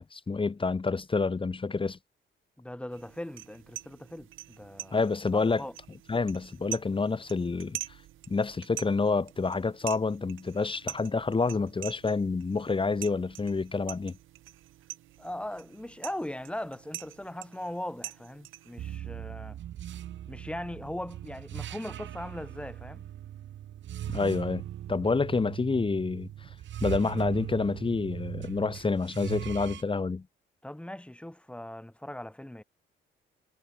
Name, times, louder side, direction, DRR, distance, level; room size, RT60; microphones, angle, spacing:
voice 1, 0.0-2.0 4.9-5.7 6.1-7.8 8.3-14.1 24.1-26.5 26.8-30.3, left 4 dB, 25° left, 2.1 m, -28 dB
voice 2, 2.6-5.0 5.3-5.7 15.2-19.6 20.3-23.1 30.6-32.6, left 1 dB, 5° left, 6.6 m, -39 dB
sound 1, 2.9-19.0, right 15 dB, 85° right, 5.4 m, -45 dB
sound 2, 18.8-29.8, right 11 dB, 70° right, 1.4 m, -39 dB
cardioid pair, 90°, 20 cm